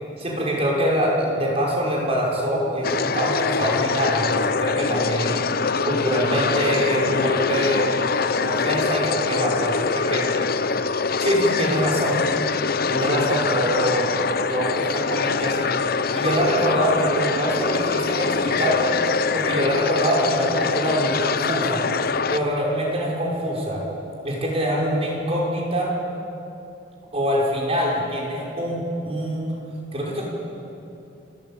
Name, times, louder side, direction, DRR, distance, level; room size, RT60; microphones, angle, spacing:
voice 1, 0.2-5.3 5.8-7.9 8.3-10.3 11.2-12.2 12.9-14.1 14.5-15.7 16.1-19.0 19.3-21.9 22.3-23.8 24.2-25.9 27.1-29.5 29.9-30.2, equal, 35° right, -3 dB, 5.7 m, -24 dB
sound 1, 2.8-22.4, left 5 dB, 55° left, 0.7 m, -24 dB
28.0 x 14.0 x 8.9 m, 2.8 s
head